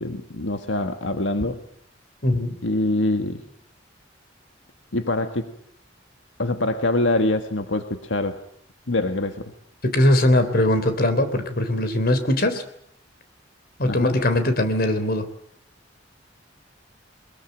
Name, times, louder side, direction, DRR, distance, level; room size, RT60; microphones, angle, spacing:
voice 1, 0.0-1.6 2.6-3.4 4.9-5.5 6.4-8.4 8.9-9.5 13.8-14.2, left 2 dB, 90° left, 7 dB, 1.7 m, -24 dB
voice 2, 2.2-2.6 9.8-12.6 13.8-15.3, left 1 dB, 55° left, 9 dB, 3.5 m, -20 dB
22.5 x 21.5 x 9.1 m, 0.71 s
head